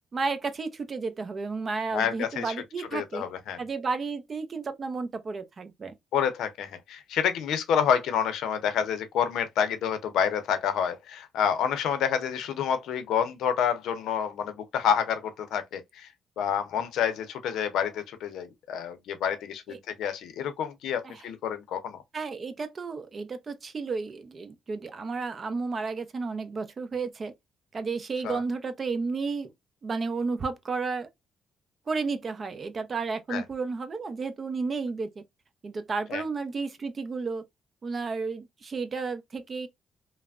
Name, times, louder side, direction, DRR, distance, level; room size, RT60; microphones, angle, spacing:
voice 1, 0.1-3.2 3.6-5.9 19.7-19.8 21.0-21.2 22.1-27.3 27.7-29.5 29.8-31.1 31.9-35.2 35.6-37.4 37.8-39.7, right 4 dB, 40° right, 0.5 m, -32 dB
voice 2, 1.9-2.5 2.9-3.6 6.1-16.1 16.4-22.0 28.2-28.4 33.3-33.4 36.1-36.2, left 8 dB, 80° left, 0.5 m, -28 dB
3.2 x 2.0 x 2.4 m
cardioid pair, 90°, 0 cm